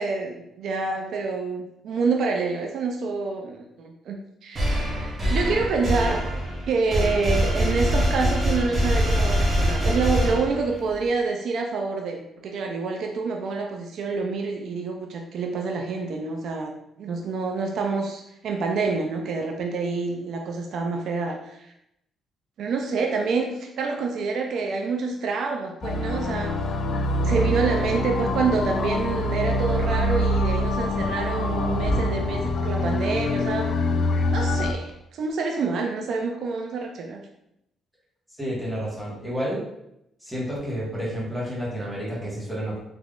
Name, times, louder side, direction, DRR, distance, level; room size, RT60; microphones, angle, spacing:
voice 1, 0.0-6.2 6.7-21.7 22.6-26.6 27.2-33.8 34.3-37.2, right 4 dB, 70° right, 2 dB, 0.4 m, -27 dB
sound 1, 4.5-10.9, equal, 35° right, 1.1 m, -24 dB
sound 2, 25.8-34.7, left 1 dB, 60° left, 0.4 m, -25 dB
voice 2, 38.4-39.6 40.2-42.8, equal, 5° right, -7 dB, 1.5 m, -30 dB
3.5 x 3.0 x 2.4 m, 0.81 s
cardioid pair, 90°, 0 cm